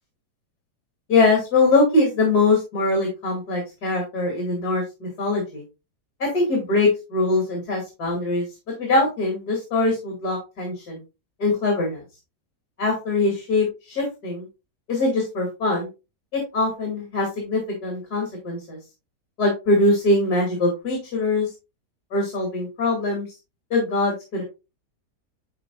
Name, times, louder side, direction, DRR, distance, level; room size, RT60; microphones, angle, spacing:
voice 1, 1.1-5.6 6.2-8.4 8.8-11.0 11.4-12.0 12.8-14.5 14.9-15.9 16.3-18.8 19.4-21.5 22.1-23.3 23.7-24.4, left 2 dB, 65° left, 0 dB, 3.0 m, -22 dB
11.5 x 4.1 x 2.3 m, 0.27 s
omnidirectional pair, 1.8 m